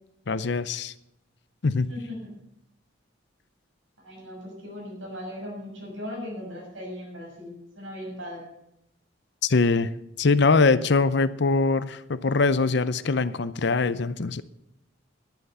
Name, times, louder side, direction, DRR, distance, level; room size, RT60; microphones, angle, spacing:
voice 1, 0.3-0.9 1.6-1.9 9.4-9.9 10.2-14.4, left 3 dB, 60° left, 15 dB, 0.6 m, -22 dB
voice 2, 1.9-2.3 4.0-8.5, left 1 dB, 75° right, -1 dB, 6.6 m, -38 dB
11.5 x 11.0 x 6.7 m, 0.83 s
head